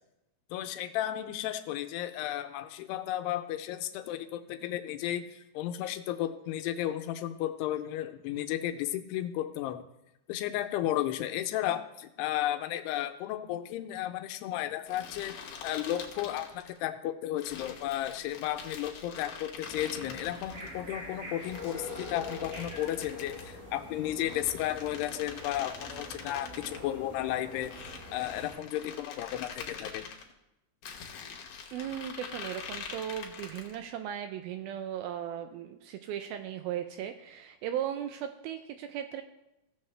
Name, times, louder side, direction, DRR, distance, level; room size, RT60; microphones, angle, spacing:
voice 1, 0.5-9.8 10.3-15.4 15.6-27.7 28.1-30.1, left 13 dB, 90° left, 8 dB, 2.7 m, -33 dB
sound 1, 14.9-16.8 17.4-20.7 21.4-23.5 24.2-26.8 27.5-30.2 30.8-33.8, left 6 dB, 65° left, 1.9 m, -44 dB
sound 2, 19.7-28.5, left 1 dB, 60° right, 5.2 m, -44 dB
voice 2, 31.7-39.2, right 10 dB, 80° right, 8 dB, 2.2 m, -37 dB
16.0 x 7.2 x 3.2 m, 0.90 s
omnidirectional pair, 4.7 m